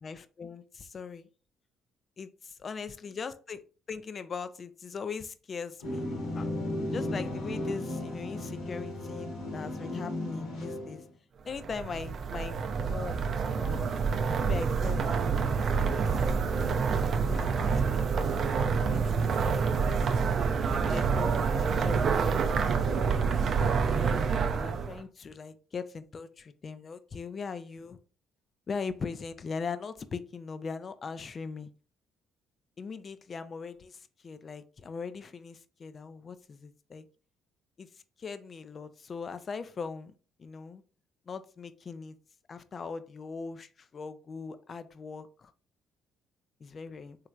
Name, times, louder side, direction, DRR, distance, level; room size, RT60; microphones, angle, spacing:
voice 1, 0.0-1.3 2.2-6.0 6.3-6.5 6.9-11.0 11.5-13.3 13.6-13.9 14.4-16.6 17.1-17.7 18.2-19.9 20.6-23.8 24.5-28.0 28.7-31.7 32.8-37.1 37.8-40.1 40.4-40.8 41.3-42.2 42.5-45.5 46.6-47.2, left 5 dB, 45° left, 12 dB, 0.4 m, -40 dB
sound 1, 5.8-11.1, left 1 dB, 75° left, 1.2 m, -35 dB
sound 2, 11.5-25.0, right 5 dB, 55° right, 0.4 m, -27 dB
3.2 x 3.1 x 2.4 m, 0.36 s
supercardioid pair, 60°, 0 cm